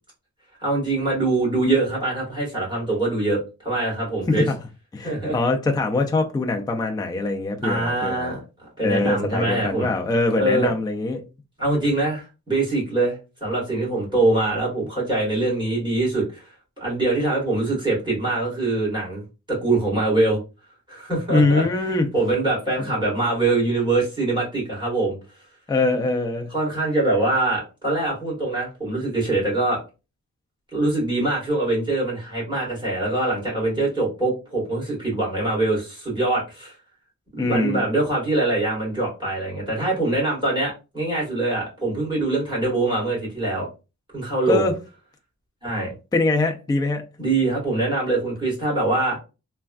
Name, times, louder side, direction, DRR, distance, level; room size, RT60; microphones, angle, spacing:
voice 1, 0.6-4.5 5.0-5.4 7.6-8.4 8.8-9.9 10.4-10.7 11.6-16.4 16.8-19.2 19.5-20.4 20.9-21.6 22.1-25.2 26.5-29.8 30.7-36.7 37.4-43.7 44.1-44.7 45.6-45.9 47.2-49.2, right 2 dB, 15° right, 1.7 m, -23 dB
voice 2, 4.9-8.3 8.8-11.2 21.3-22.1 22.8-22.9 25.7-26.5 37.4-37.8 44.5-44.7 46.1-47.0, left 3 dB, 15° left, 0.3 m, -23 dB
3.4 x 2.2 x 2.3 m
wide cardioid pair, 170°, 34 cm